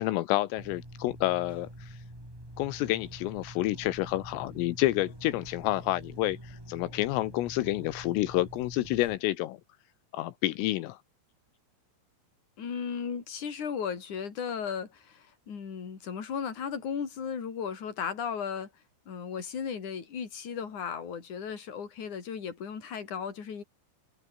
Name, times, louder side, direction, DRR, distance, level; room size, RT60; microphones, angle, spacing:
voice 1, 0.0-2.0 2.6-9.6 10.1-11.0, left 17 dB, 85° left, 3.7 m, -29 dB
sound 1, 0.6-9.2, right 1 dB, 5° right, 5.8 m, -46 dB
voice 2, 12.6-18.7 19.1-23.6, left 7 dB, 40° left, 4.9 m, -35 dB
omnidirectional pair, 5.9 m